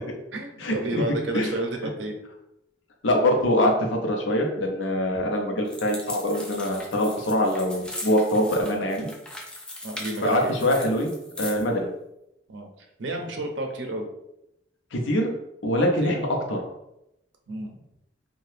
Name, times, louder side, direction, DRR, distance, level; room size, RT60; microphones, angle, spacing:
voice 1, 0.3-2.2 9.8-10.5 12.5-12.7 13.0-14.1 15.7-16.2 17.5-17.7, right 1 dB, 70° right, 3 dB, 0.6 m, -31 dB
voice 2, 3.0-9.1 10.2-11.9 14.9-15.3 15.6-16.6, left 1 dB, 85° left, 1 dB, 0.7 m, -24 dB
sound 1, 5.6-11.7, left 1 dB, 5° left, 0.3 m, -39 dB
2.7 x 2.3 x 3.3 m, 0.84 s
head